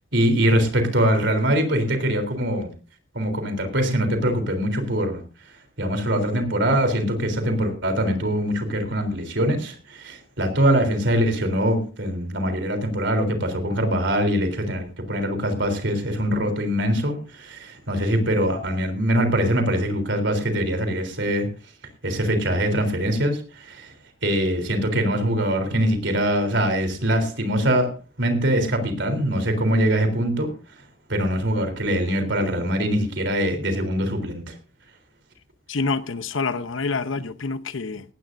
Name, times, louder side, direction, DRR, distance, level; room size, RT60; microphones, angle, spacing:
voice 1, 0.1-2.7 3.1-5.2 5.8-21.5 22.0-23.9 24.2-27.9 28.2-30.5 31.1-34.5, equal, 65° right, 3.6 m, -23 dB
voice 2, 35.7-38.0, left 4 dB, 80° left, 0.9 m, -27 dB
18.5 x 15.5 x 2.7 m
head